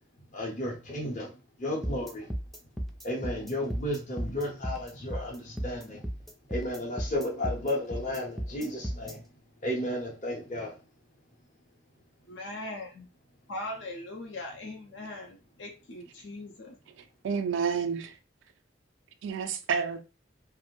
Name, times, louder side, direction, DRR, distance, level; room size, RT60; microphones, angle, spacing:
voice 1, 0.3-1.3 1.6-2.2 3.0-6.0 6.5-9.2 9.6-10.7, left 1 dB, 40° left, 0.7 m, -33 dB
sound 1, 1.8-9.1, equal, ahead, 0.3 m, -35 dB
voice 2, 12.3-13.1 13.5-16.8, left 1 dB, 70° left, 0.6 m, -40 dB
voice 3, 17.0-18.2 19.2-20.0, right 6 dB, 85° right, 0.3 m, -30 dB
2.5 x 2.0 x 2.9 m
head